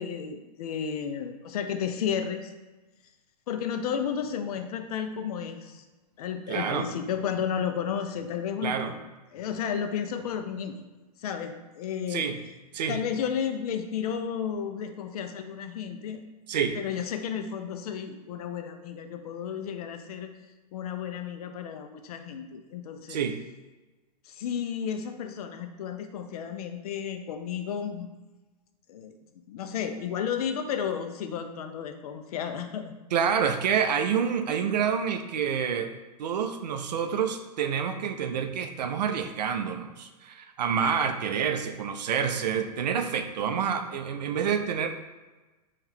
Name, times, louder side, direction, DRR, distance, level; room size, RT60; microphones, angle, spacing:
voice 1, 0.0-2.5 3.5-5.8 6.2-9.0 9.3-10.8 11.2-12.3 12.9-16.2 16.8-20.3 20.7-23.2 24.2-28.1 28.9-29.1 29.5-32.9 33.3-33.4, left 8 dB, 60° left, 7 dB, 0.4 m, -32 dB
voice 2, 6.5-6.9 8.6-8.9 12.1-12.4 12.7-13.0 16.5-16.8 23.1-23.4 33.1-35.9 36.2-44.9, right 7 dB, 75° right, 7 dB, 0.4 m, -28 dB
2.8 x 2.4 x 3.3 m, 1.2 s
hypercardioid pair, 120°, 21 cm